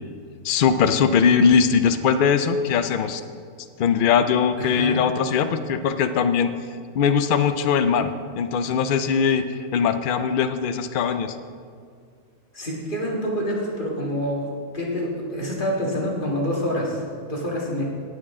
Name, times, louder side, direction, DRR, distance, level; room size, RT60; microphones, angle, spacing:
voice 1, 0.4-3.2 3.8-6.5 6.9-11.4, left 6 dB, 65° left, 9 dB, 0.5 m, -20 dB
voice 2, 4.6-5.0 12.5-17.8, equal, 35° left, -4 dB, 2.1 m, -27 dB
18.0 x 6.2 x 3.7 m, 2.2 s
omnidirectional pair, 1.5 m